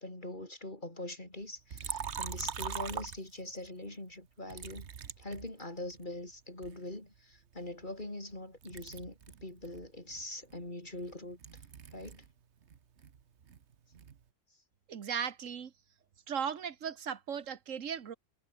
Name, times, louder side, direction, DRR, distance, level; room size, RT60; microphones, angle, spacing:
voice 1, 0.0-4.9 5.2-11.4 11.9-12.3, left 1 dB, 40° left, 5.1 m, -43 dB
Liquid, 1.7-3.7 4.5-6.0 6.6-8.4 8.6-12.3 12.6-14.2, right 7 dB, 65° right, 1.4 m, -43 dB
voice 2, 14.9-15.7 16.3-18.1, right 7 dB, 85° right, 1.6 m, -37 dB
omnidirectional pair, 1.3 m